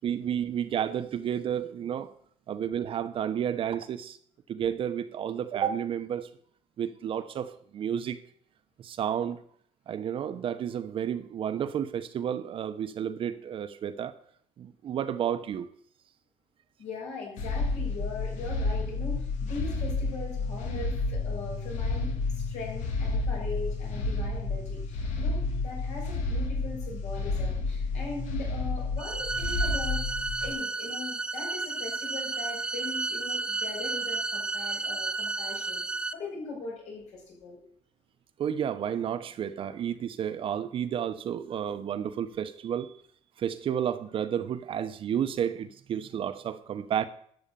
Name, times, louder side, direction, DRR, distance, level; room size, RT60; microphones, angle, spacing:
voice 1, 0.0-2.1 2.5-4.2 4.5-6.3 6.8-8.2 8.8-9.4 9.9-14.1 14.6-15.7 20.7-20.9 38.4-42.9 43.4-47.1, right 9 dB, 45° right, 11 dB, 0.9 m, -31 dB
voice 2, 16.8-30.0 30.4-35.8 36.1-37.6, left 3 dB, 70° left, -2 dB, 7.2 m, -40 dB
sound 1, 17.4-30.5, left 3 dB, 90° left, 2.7 m, -31 dB
sound 2, 21.1-27.3, left 4 dB, 25° left, 2.8 m, -43 dB
sound 3, 29.0-36.1, right 3 dB, 10° right, 0.5 m, -32 dB
13.0 x 8.3 x 6.8 m, 0.62 s
cardioid pair, 145°, 12 cm